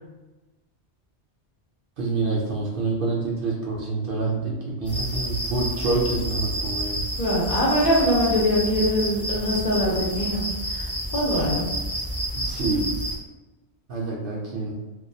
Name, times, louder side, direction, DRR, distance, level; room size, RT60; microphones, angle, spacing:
voice 1, 2.0-7.1 12.3-13.0 13.9-14.8, right 3 dB, 60° right, -3 dB, 0.6 m, -27 dB
sound 1, 4.9-13.1, equal, 15° left, 0.5 m, -29 dB
voice 2, 7.2-10.4 10.7-10.9 11.1-11.7, equal, 55° left, -4 dB, 0.8 m, -22 dB
2.3 x 2.3 x 2.6 m, 1.2 s
omnidirectional pair, 1.1 m